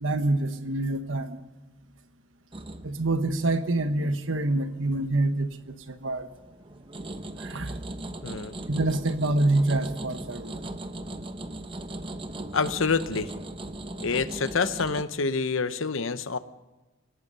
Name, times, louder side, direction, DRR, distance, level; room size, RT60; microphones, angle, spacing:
voice 1, 0.0-1.4 2.8-6.3 7.4-7.8 8.7-10.7, right 2 dB, 70° right, 9 dB, 1.3 m, -26 dB
sound 1, 2.5-4.7 5.1-5.6 6.1-15.1, right 1 dB, 25° right, 1.0 m, -39 dB
voice 2, 8.2-8.5 12.5-13.3 14.0-16.4, left 4 dB, 70° left, 12 dB, 0.9 m, -27 dB
26.5 x 18.0 x 5.5 m, 1.2 s
head